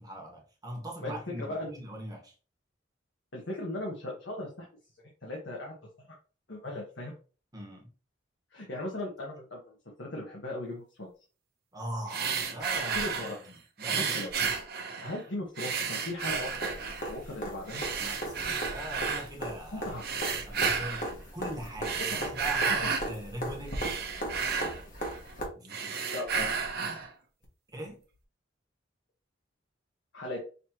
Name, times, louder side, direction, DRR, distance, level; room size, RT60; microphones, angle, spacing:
voice 1, 0.0-2.3 7.5-7.9 11.7-13.0 13.4-14.1 18.0-19.9 20.5-22.0 22.3-23.9 25.5-26.1 27.7-28.0, right 1 dB, 20° right, 1.3 m, -41 dB
voice 2, 1.0-1.7 3.3-4.7 5.2-5.7 6.5-7.1 8.5-9.7 10.0-11.1 12.9-13.4 14.0-14.3 15.0-17.8 19.7-20.0 22.1-22.3 22.6-22.9 24.6-24.7 26.1-26.5 30.1-30.4, left 1 dB, 70° left, 1.3 m, -38 dB
sound 1, 12.1-13.4 13.8-15.2 15.6-17.1 17.7-19.3 20.0-21.1 21.7-23.1 23.5-25.3 25.6-27.1, right 5 dB, 55° right, 0.9 m, -32 dB
sound 2, 16.3-25.4 27.4-27.5, equal, 45° left, 1.5 m, -38 dB
5.7 x 3.1 x 2.9 m
head